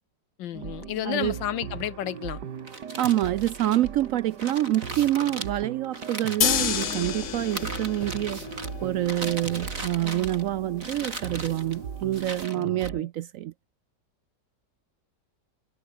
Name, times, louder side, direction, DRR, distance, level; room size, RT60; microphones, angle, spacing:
voice 1, 0.4-2.4 12.5-13.1, left 12 dB, 85° left, 1.7 m, -32 dB
sound 1, 0.5-13.0, right 7 dB, 65° right, 2.1 m, -39 dB
voice 2, 1.0-1.4 3.0-8.4 8.8-13.5, right 13 dB, 85° right, 0.7 m, -27 dB
sound 2, 2.6-7.1 7.5-8.7 9.0-10.5 10.8-11.8 12.1-12.9, right 2 dB, 45° right, 5.4 m, -38 dB
sound 3, 6.4-12.4, left 10 dB, 55° left, 1.0 m, -32 dB
omnidirectional pair, 2.0 m